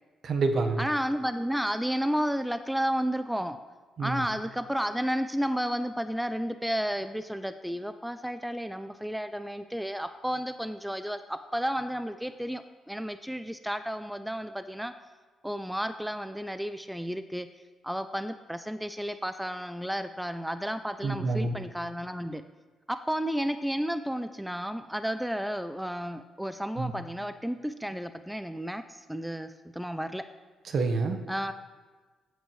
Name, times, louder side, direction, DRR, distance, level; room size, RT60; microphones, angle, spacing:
voice 1, 0.2-0.9 4.0-4.2 21.0-21.5 26.8-26.9 30.7-31.2, right 3 dB, 55° right, 6 dB, 1.2 m, -27 dB
voice 2, 0.8-3.6 4.0-14.9 15.4-17.5 17.8-22.4 22.9-30.2 31.3-31.5, equal, 5° right, 10 dB, 0.4 m, -32 dB
16.0 x 8.0 x 3.2 m, 1.4 s
cardioid pair, 90°, 0 cm